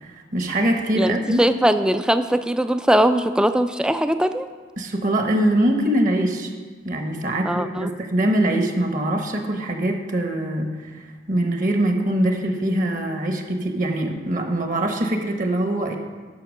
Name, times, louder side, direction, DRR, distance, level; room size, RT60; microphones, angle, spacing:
voice 1, 0.0-1.4 4.8-6.5 6.8-16.0, right 1 dB, 45° right, 4 dB, 1.1 m, -23 dB
voice 2, 1.0-4.5 7.5-7.9, right 1 dB, 5° right, 9 dB, 0.3 m, -20 dB
10.5 x 5.9 x 6.3 m, 1.5 s
head